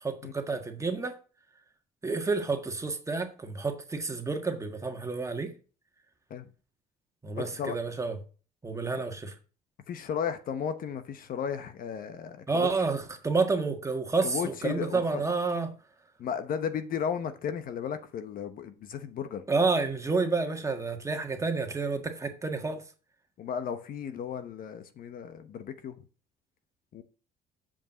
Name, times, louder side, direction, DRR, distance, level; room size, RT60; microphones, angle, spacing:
voice 1, 0.0-1.2 2.0-5.5 7.2-8.2 8.6-9.3 12.5-15.7 19.5-22.8, right 4 dB, 20° right, 1.6 m, -29 dB
voice 2, 7.4-7.8 9.9-12.7 14.2-15.2 16.2-19.4 23.4-26.0 26.9-27.0, left 7 dB, 55° left, 1.0 m, -34 dB
7.4 x 5.3 x 7.4 m
cardioid pair, 110°, 17 cm